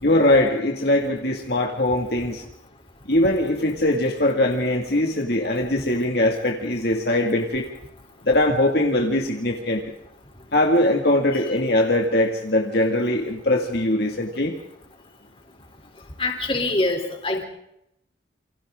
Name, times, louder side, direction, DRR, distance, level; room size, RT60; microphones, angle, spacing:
voice 1, 0.0-2.4 3.1-7.7 8.2-9.9 10.5-14.5, left 1 dB, 55° left, 1 dB, 2.2 m, -21 dB
voice 2, 16.2-17.4, left 2 dB, 30° left, 4 dB, 3.6 m, -24 dB
28.5 x 25.5 x 3.8 m, 0.79 s
head